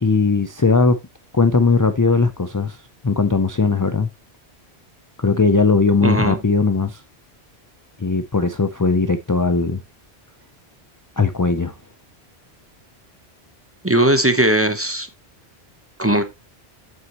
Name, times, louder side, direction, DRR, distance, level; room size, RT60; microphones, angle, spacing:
voice 1, 0.0-1.0 1.3-2.8 3.0-4.1 5.2-7.0 8.0-9.8 11.2-11.7, left 4 dB, 25° left, 0.4 m, -18 dB
voice 2, 6.0-6.4 13.8-15.1 16.0-16.2, right 1 dB, 15° right, 0.9 m, -18 dB
8.1 x 8.0 x 3.0 m
omnidirectional pair, 1.1 m